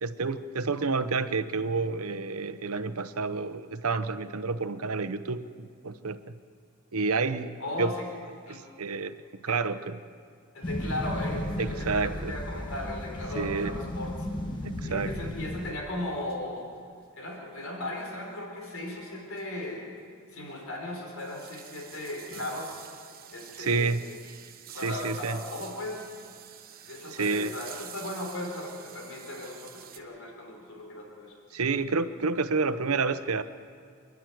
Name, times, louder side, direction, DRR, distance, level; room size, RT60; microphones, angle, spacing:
voice 1, 0.0-6.3 6.9-7.9 8.5-9.1 9.4-10.0 11.6-12.3 13.3-13.7 14.6-15.3 23.6-24.0 24.8-25.4 27.1-27.5 31.5-33.4, right 4 dB, 80° right, 12 dB, 0.9 m, -29 dB
voice 2, 7.6-8.1 8.5-8.6 9.5-9.6 10.5-14.1 14.8-16.7 17.1-19.9 20.3-22.9 23.3-24.0 24.7-26.0 26.9-31.4, left 1 dB, 65° left, 0 dB, 4.2 m, -37 dB
sound 1, 10.6-15.7, left 1 dB, 20° left, 1.6 m, -34 dB
sound 2, 10.9-11.0 11.2-11.3 11.5-11.6 13.3-13.4 13.6-13.7 14.7-14.8 16.3-16.5 17.6-17.7 18.4-18.5 18.8-18.9 19.4-19.6 19.8-19.9 20.5-30.0, right 9 dB, 40° right, 1.2 m, -48 dB
27.5 x 11.0 x 9.2 m, 2.4 s
head